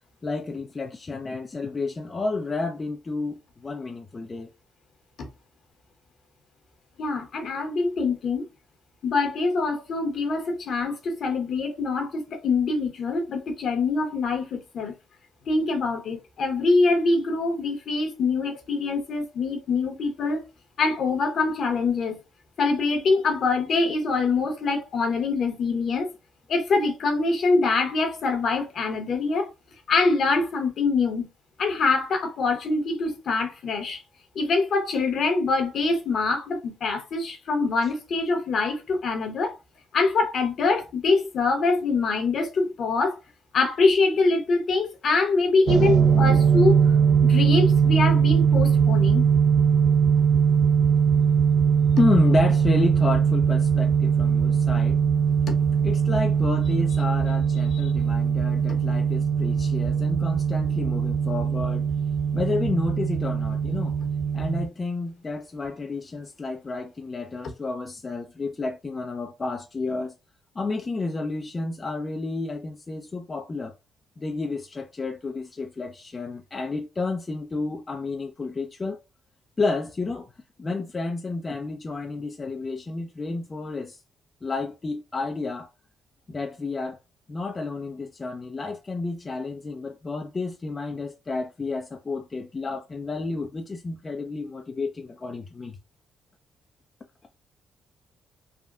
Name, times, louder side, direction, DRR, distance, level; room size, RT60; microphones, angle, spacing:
voice 1, 0.2-4.5 37.8-37.9 52.0-55.0 55.8-61.9 62.3-64.0 64.3-70.1 70.6-73.7 74.2-79.0 79.6-80.3 80.6-84.0 84.4-85.7 86.3-87.0 87.3-95.8, left 3 dB, 30° left, 0.4 m, -30 dB
voice 2, 7.0-8.4 9.0-14.9 15.5-20.4 20.8-22.2 22.6-26.1 26.5-29.5 29.9-31.3 31.6-34.0 34.3-39.5 39.9-43.2 43.5-46.8 47.2-49.3 55.5-55.6 57.7-57.9 58.9-59.0, left 3 dB, 60° left, 1.0 m, -24 dB
sound 1, 45.7-64.7, right 7 dB, 65° right, 0.5 m, -21 dB
3.5 x 2.2 x 2.4 m
cardioid pair, 90°, 0 cm